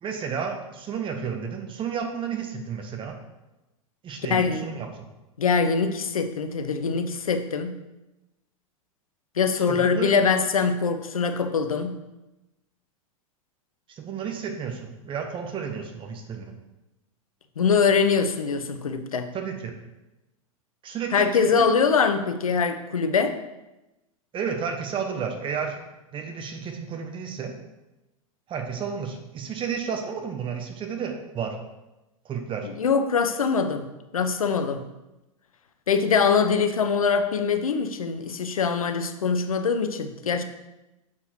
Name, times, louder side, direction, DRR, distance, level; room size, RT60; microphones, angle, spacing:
voice 1, 0.0-3.2 4.0-4.9 9.7-10.2 13.9-16.5 19.3-19.7 20.8-21.7 24.3-25.7 26.1-27.5 28.5-31.6 32.2-32.7, right 6 dB, 30° right, 4 dB, 1.2 m, -32 dB
voice 2, 4.3-4.7 5.4-7.8 9.4-12.0 17.6-19.3 21.1-23.4 32.6-33.9 34.1-34.9 35.9-40.4, left 5 dB, 80° left, 8 dB, 0.7 m, -23 dB
7.0 x 4.7 x 4.5 m, 0.99 s
figure-of-eight pair, 95°, 18 cm